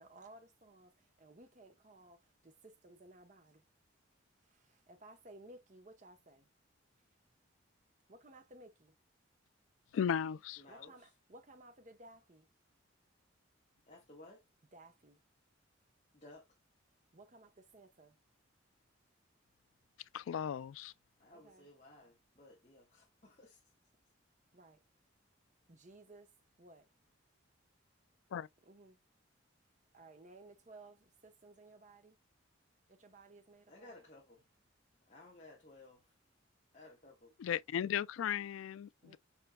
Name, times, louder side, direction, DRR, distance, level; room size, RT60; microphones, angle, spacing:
voice 1, 0.0-3.6 4.5-6.5 8.1-8.9 10.7-12.5 14.7-15.2 17.1-18.2 21.3-21.7 24.5-24.8 25.7-26.3 26.6-26.9 28.7-29.0 29.9-32.2 32.9-33.9 39.0-39.2, right 2 dB, 40° right, 0.8 m, -58 dB
voice 2, 9.9-10.6 20.1-20.9 28.3-28.5 37.4-39.2, left 8 dB, 80° left, 0.3 m, -36 dB
voice 3, 10.6-11.1 13.9-14.4 16.1-16.5 21.2-23.6 33.7-34.4 35.1-36.0 36.7-37.3, left 2 dB, 35° left, 1.3 m, -57 dB
5.4 x 4.4 x 2.2 m
head